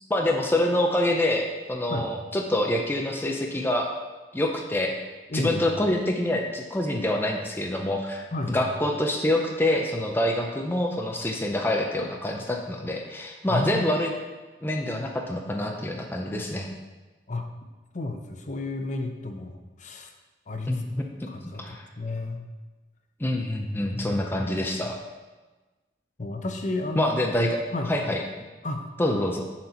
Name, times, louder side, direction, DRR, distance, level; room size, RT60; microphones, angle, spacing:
voice 1, 0.1-3.9 4.3-5.0 5.3-14.1 14.6-16.7 20.7-21.3 21.6-21.9 23.2-25.0 27.0-27.6 27.8-28.2 29.0-29.5, left 1 dB, 15° left, 1 dB, 0.6 m, -26 dB
voice 2, 5.3-5.6 8.3-8.7 13.5-13.9 17.3-17.5 17.9-20.1 20.5-20.8 21.3-22.4 23.3-23.4 23.8-24.2 26.2-27.1 27.7-27.9 28.6-28.9, left 2 dB, 45° left, 4 dB, 0.7 m, -32 dB
10.5 x 4.3 x 4.3 m, 1.2 s
head